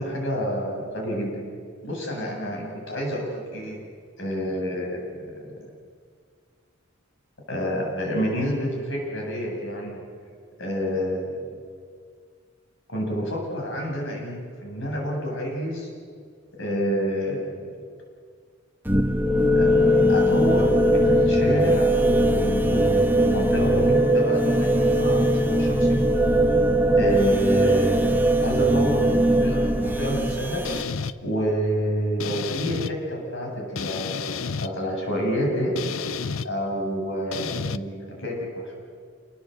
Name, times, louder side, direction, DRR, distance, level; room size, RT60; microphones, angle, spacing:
voice 1, 0.0-1.4 1.8-3.8 4.2-5.7 7.5-10.0 10.6-11.5 12.9-15.9 16.6-17.8 19.5-26.0 26.9-30.9 31.2-35.8 36.4-38.8, equal, 70° left, -1 dB, 7.9 m, -28 dB
sound 1, 18.9-30.8, equal, 10° right, 1.2 m, -20 dB
sound 2, 30.6-31.1 32.2-32.9 33.8-34.7 35.8-36.5 37.3-37.8, left 5 dB, 90° left, 0.7 m, -30 dB
28.5 x 19.0 x 8.1 m, 2.1 s
head